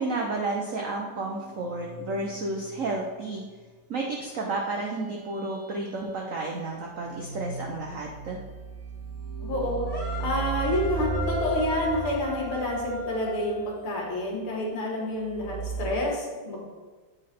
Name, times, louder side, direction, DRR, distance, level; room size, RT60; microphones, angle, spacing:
voice 1, 0.0-3.4 3.9-8.4, right 2 dB, 85° right, 0 dB, 0.7 m, -31 dB
sound 1, 0.7-3.3 3.5-3.7 4.7-16.0, right 4 dB, 55° right, 1.1 m, -37 dB
voice 2, 9.4-16.6, left 1 dB, 75° left, -2 dB, 2.4 m, -29 dB
sound 2, 9.9-14.0, left 1 dB, 15° right, 1.1 m, -38 dB
8.4 x 3.9 x 4.3 m, 1.4 s
omnidirectional pair, 2.4 m